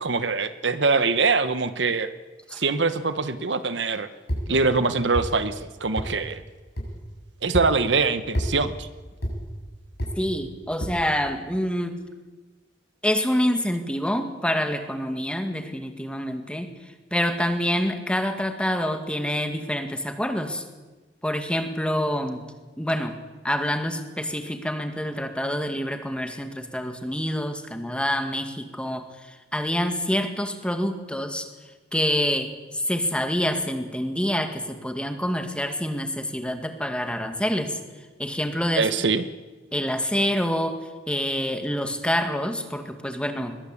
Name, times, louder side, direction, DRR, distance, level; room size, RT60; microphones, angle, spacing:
voice 1, 0.0-2.1 2.5-4.1 4.5-6.4 7.4-8.9 38.7-39.2, right 4 dB, 70° right, 12 dB, 1.2 m, -23 dB
sound 1, 4.3-4.5 5.1-5.3 6.0-6.1 6.8-6.9 7.5-7.7 8.3-8.5 9.2-9.4 10.0-10.1 10.8-11.0, equal, 60° left, 7.4 m, -27 dB
voice 2, 10.2-12.0 13.0-16.7 17.1-20.6 21.2-22.4 22.8-23.1 23.4-31.5 31.9-37.8 38.2-38.9 39.7-40.8 41.1-43.6, equal, 5° left, 6 dB, 2.1 m, -27 dB
21.5 x 21.0 x 8.5 m, 1.3 s
head